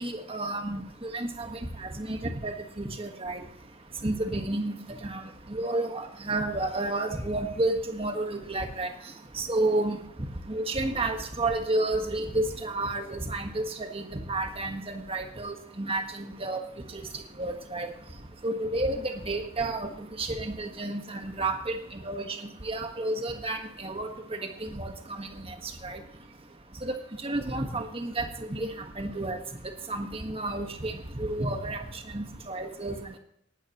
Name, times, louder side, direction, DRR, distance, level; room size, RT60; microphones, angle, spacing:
voice 1, 0.0-3.4 4.0-4.8 5.0-5.2 5.5-8.9 9.3-10.0 10.5-16.6 16.9-17.0 17.4-17.9 18.4-19.9 20.2-21.7 22.0-22.4 22.6-25.5 25.8-26.0 26.8-26.9 27.2-28.7 29.0-29.4 29.9-31.8 32.1-33.0, right 2 dB, 30° right, 5 dB, 1.5 m, -31 dB
18.0 x 12.5 x 3.1 m, 0.71 s
head